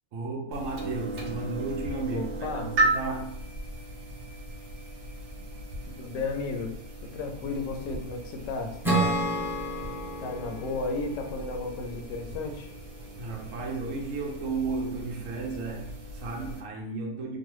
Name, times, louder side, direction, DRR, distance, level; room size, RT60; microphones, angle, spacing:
voice 1, 0.1-3.4 13.2-17.4, right 3 dB, 90° right, 1 dB, 1.1 m, -34 dB
sound 1, 0.5-16.6, right 2 dB, 60° right, 0.8 m, -36 dB
voice 2, 2.1-2.7 5.9-6.7 7.0-9.1 10.2-12.7, left 3 dB, 80° left, 4 dB, 0.9 m, -34 dB
Acoustic guitar / Strum, 8.8-12.3, right 1 dB, 5° right, 0.4 m, -30 dB
3.0 x 2.2 x 3.0 m, 0.72 s
omnidirectional pair, 1.3 m